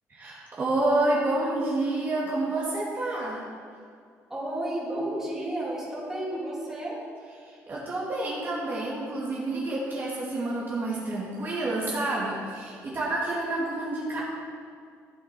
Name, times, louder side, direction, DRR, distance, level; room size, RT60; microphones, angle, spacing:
voice 1, 0.1-3.4 7.4-14.2, right 2 dB, 35° right, -6 dB, 2.5 m, -29 dB
voice 2, 4.3-7.0, right 1 dB, 10° right, -6 dB, 3.3 m, -32 dB
14.5 x 8.2 x 4.5 m, 2.2 s
cardioid pair, 115°, 6 cm